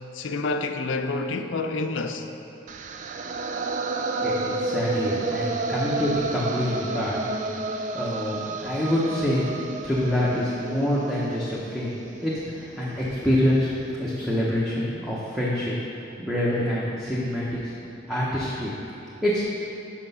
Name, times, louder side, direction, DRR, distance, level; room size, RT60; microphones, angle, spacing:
voice 1, 0.1-2.3, left 3 dB, 80° left, 7 dB, 0.5 m, -28 dB
sound 1, 2.7-12.7, right 3 dB, 40° right, 0.3 m, -31 dB
voice 2, 4.2-7.5 7.9-9.5 9.8-11.9 12.2-18.7 19.2-19.4, left 1 dB, ahead, -8 dB, 0.7 m, -26 dB
5.9 x 5.7 x 5.4 m, 2.9 s
head